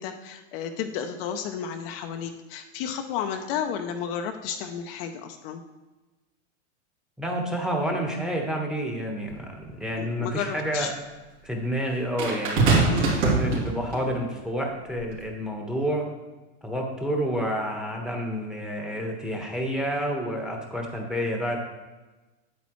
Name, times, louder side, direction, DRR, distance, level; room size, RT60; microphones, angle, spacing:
voice 1, 0.0-5.6 10.0-10.9 12.9-13.1, left 8 dB, 50° left, 5 dB, 0.8 m, -32 dB
voice 2, 7.2-10.9 11.4-16.1 16.6-21.6, equal, ahead, 1 dB, 1.2 m, -29 dB
sound 1, 9.3-9.4 12.2-14.1 15.0-15.2, right 3 dB, 55° right, 2.8 m, -23 dB
8.5 x 8.1 x 3.1 m, 1.1 s
hypercardioid pair, 125°, 36 cm